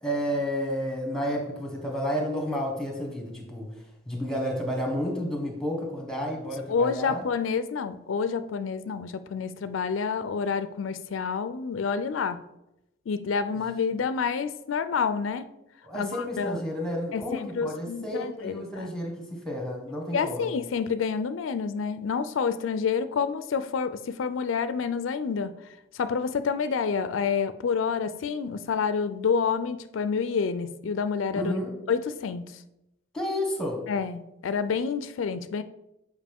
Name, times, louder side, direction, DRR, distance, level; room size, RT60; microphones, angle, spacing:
voice 1, 0.0-7.2 15.8-20.5 31.3-31.7 33.1-33.9, equal, 5° left, 2 dB, 1.2 m, -31 dB
voice 2, 6.7-12.4 13.1-15.5 15.9-16.6 17.1-18.9 20.1-25.6 25.9-31.6 31.9-32.6 33.9-35.6, left 5 dB, 90° left, 12 dB, 0.4 m, -28 dB
7.4 x 5.1 x 3.5 m, 0.88 s
head